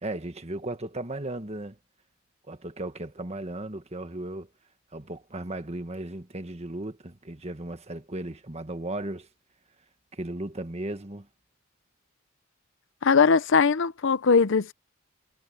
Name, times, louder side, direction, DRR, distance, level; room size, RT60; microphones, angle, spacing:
voice 1, 0.0-1.8 2.5-4.5 4.9-9.3 10.1-11.3, right 1 dB, 30° right, 1.5 m, -36 dB
voice 2, 13.0-14.7, left 5 dB, 60° left, 0.6 m, -20 dB
head